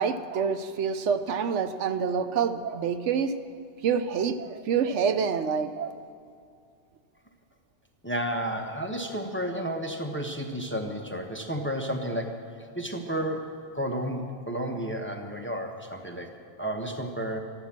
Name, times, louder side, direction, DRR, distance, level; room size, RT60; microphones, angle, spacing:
voice 1, 0.0-3.3 3.8-6.0, right 6 dB, 75° right, 10 dB, 1.0 m, -27 dB
voice 2, 8.0-16.3 16.6-17.4, equal, 10° left, 3 dB, 0.9 m, -32 dB
13.0 x 11.5 x 7.4 m, 2.3 s
omnidirectional pair, 1.2 m